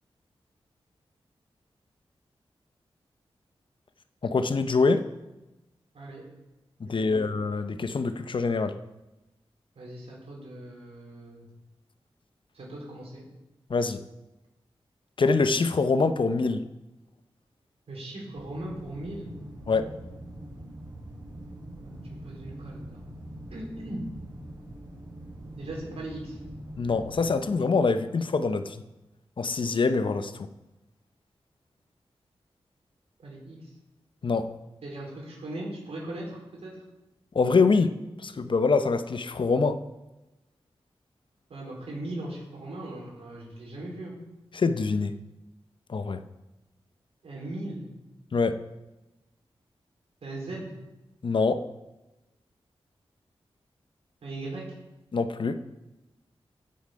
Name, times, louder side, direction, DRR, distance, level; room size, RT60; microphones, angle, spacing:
voice 1, 4.2-5.1 6.8-8.8 13.7-14.0 15.2-16.7 19.7-19.9 26.8-28.8 29.4-30.5 34.2-34.5 37.3-39.8 44.5-45.2 45.9-46.3 48.3-48.6 51.2-51.7 55.1-55.6, left 4 dB, 55° left, 0.7 m, -25 dB
voice 2, 6.8-7.2 9.8-11.5 12.5-13.2 17.9-19.4 21.8-23.1 23.5-24.0 25.6-26.4 33.2-33.7 34.8-36.7 41.5-44.2 47.2-47.9 50.2-50.7 54.2-54.8, right 1 dB, 85° right, 4.3 m, -39 dB
sound 1, 18.3-27.4, right 1 dB, 40° right, 4.9 m, -43 dB
15.0 x 7.1 x 5.1 m
wide cardioid pair, 80°, 10 cm